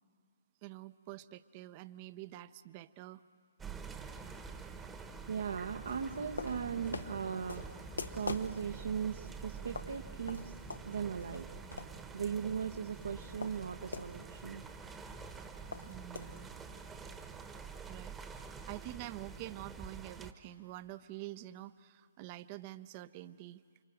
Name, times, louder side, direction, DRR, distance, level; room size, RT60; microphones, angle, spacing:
voice 1, 0.6-3.2 15.9-16.5 17.9-23.6, right 16 dB, 35° right, 14 dB, 0.7 m, -47 dB
sound 1, 3.6-20.3, right 5 dB, 10° right, 1.1 m, -47 dB
voice 2, 5.3-7.8 8.1-10.6 10.8-11.5 12.1-14.6, right 7 dB, 70° right, 6 dB, 1.0 m, -38 dB
sound 2, 5.9-14.2 14.4-14.5 14.8-17.1, left 3 dB, 85° left, 1.1 m, -45 dB
29.5 x 25.0 x 7.7 m, 2.2 s
figure-of-eight pair, 135°, 0 cm